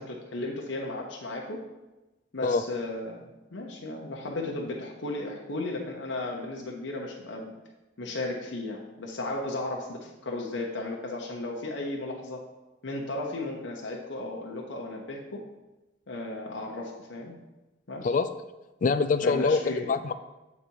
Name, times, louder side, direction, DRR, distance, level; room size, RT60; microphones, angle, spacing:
voice 1, 0.0-1.6 2.3-3.2 3.5-7.5 8.0-12.4 12.8-15.4 16.1-17.3 17.9-18.1 19.2-19.9, left 2 dB, 80° left, -1 dB, 1.0 m, -35 dB
voice 2, 18.8-20.1, left 4 dB, 45° left, 11 dB, 0.3 m, -24 dB
8.4 x 4.1 x 4.6 m, 1.1 s
head